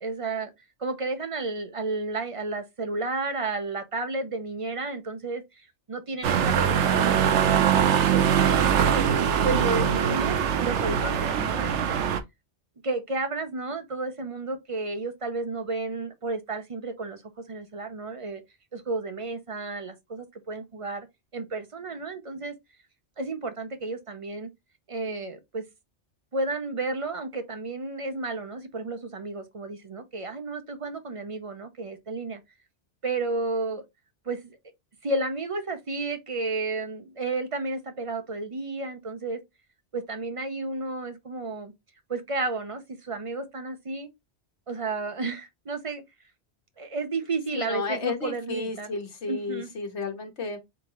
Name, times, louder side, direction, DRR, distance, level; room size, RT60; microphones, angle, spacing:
voice 1, 0.0-0.5 0.8-9.1 9.4-12.1 12.8-18.4 18.7-21.1 21.3-22.5 23.2-24.5 24.9-25.7 26.3-32.4 33.0-33.8 34.2-34.6 35.0-39.4 39.9-41.7 42.1-44.1 44.7-46.0 46.8-48.9 49.3-49.7, right 3 dB, 35° right, 0.6 m, -32 dB
sound 1, 6.2-12.2, right 8 dB, 90° right, 1.0 m, -22 dB
voice 2, 47.5-50.6, left 4 dB, 75° left, 1.4 m, -32 dB
3.8 x 3.6 x 3.0 m
omnidirectional pair, 1.2 m